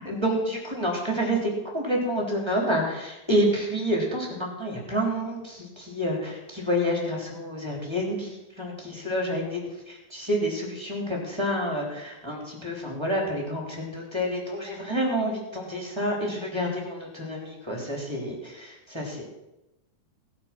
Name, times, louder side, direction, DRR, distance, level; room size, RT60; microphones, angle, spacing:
voice 1, 0.0-9.6 9.9-19.2, equal, 5° right, -1 dB, 3.2 m, -28 dB
19.0 x 8.9 x 6.2 m, 0.94 s
omnidirectional pair, 4.6 m